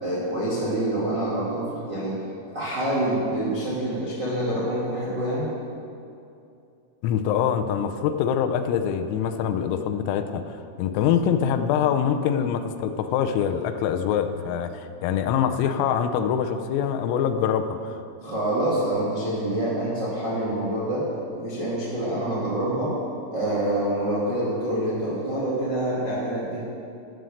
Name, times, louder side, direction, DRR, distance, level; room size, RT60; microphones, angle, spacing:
voice 1, 0.0-2.1 2.5-5.5 18.2-21.0 21.3-22.9 23.3-26.6, right 1 dB, 50° right, -7 dB, 1.2 m, -26 dB
voice 2, 7.0-18.0, left 8 dB, 85° left, 8 dB, 3.3 m, -24 dB
12.5 x 9.1 x 6.5 m, 2.6 s
omnidirectional pair, 6.0 m